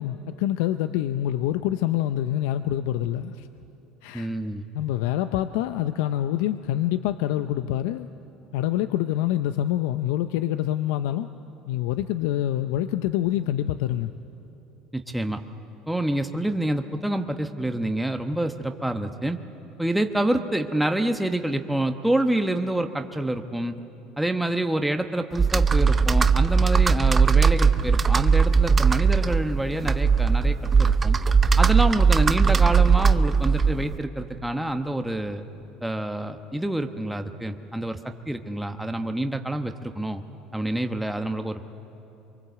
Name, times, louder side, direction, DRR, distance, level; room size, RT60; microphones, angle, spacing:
voice 1, 0.0-3.5 4.0-4.3 4.7-8.1 8.5-11.3 11.7-14.1, left 12 dB, 80° left, 10 dB, 0.6 m, -26 dB
voice 2, 4.1-4.7 14.9-15.4 15.9-19.4 19.8-23.7 24.2-31.2 31.6-35.4 35.8-40.2 40.5-41.7, right 1 dB, 5° right, 6 dB, 1.1 m, -27 dB
Computer keyboard, 25.3-34.0, right 5 dB, 25° right, 0.7 m, -19 dB
24.0 x 23.5 x 8.0 m, 2.9 s
supercardioid pair, 100°, 0 cm